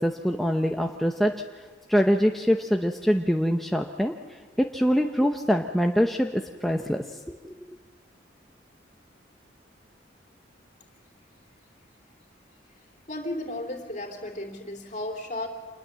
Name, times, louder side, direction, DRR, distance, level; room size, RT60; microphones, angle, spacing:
voice 1, 0.0-1.4 1.9-4.1 4.6-7.8, equal, ahead, 2 dB, 0.7 m, -24 dB
voice 2, 13.1-15.5, left 1 dB, 40° left, 3 dB, 3.3 m, -34 dB
27.0 x 20.5 x 7.5 m, 1.4 s
head